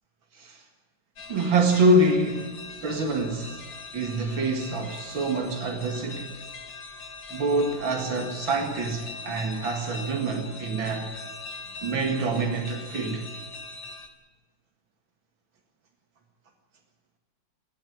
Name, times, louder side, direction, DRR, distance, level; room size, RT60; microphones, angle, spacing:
sound 1, 1.2-14.1, left 3 dB, 75° left, 2.4 m, -41 dB
voice 1, 1.3-2.6 2.8-3.6 3.9-6.3 7.3-11.1 11.8-13.2, right 2 dB, 90° right, 3 dB, 2.8 m, -25 dB
20.5 x 13.5 x 9.6 m, 1.2 s
omnidirectional pair, 2.1 m